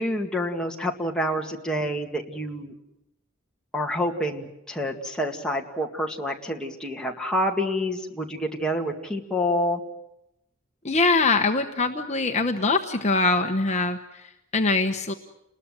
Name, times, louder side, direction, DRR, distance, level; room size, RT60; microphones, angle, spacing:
voice 1, 0.0-2.7 3.7-9.8, equal, 5° left, 0 dB, 2.2 m, -28 dB
voice 2, 10.8-15.1, left 3 dB, 35° left, 4 dB, 1.1 m, -23 dB
30.0 x 21.0 x 7.7 m, 0.89 s
head